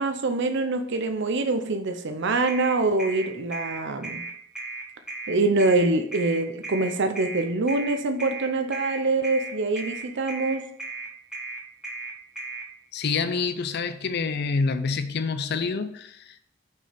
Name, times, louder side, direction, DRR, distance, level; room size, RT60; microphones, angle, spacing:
voice 1, 0.0-4.2 5.3-10.6, right 3 dB, 60° right, 0.6 m, -25 dB
sound 1, 2.5-12.7, right 3 dB, 5° right, 1.3 m, -36 dB
voice 2, 12.9-16.5, left 4 dB, 55° left, 0.5 m, -27 dB
6.1 x 4.6 x 5.1 m
head